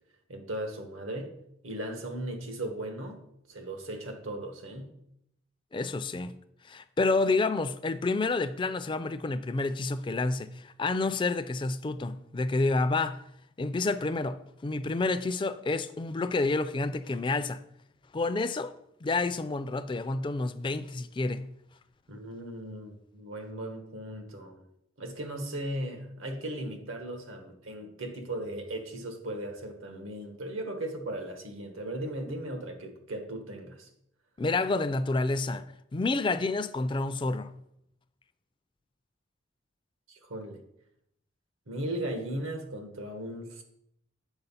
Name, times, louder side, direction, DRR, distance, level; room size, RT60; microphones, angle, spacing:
voice 1, 0.3-1.3 1.6-3.2 3.5-4.9 22.1-24.6 25.0-33.9 40.1-40.6 41.7-43.6, right 1 dB, 80° right, 1.4 m, -37 dB
voice 2, 5.7-6.3 6.6-13.2 13.6-17.6 18.1-18.7 19.0-21.5 34.4-35.7 35.9-37.5, left 3 dB, 25° left, 0.3 m, -29 dB
8.0 x 4.5 x 5.6 m
head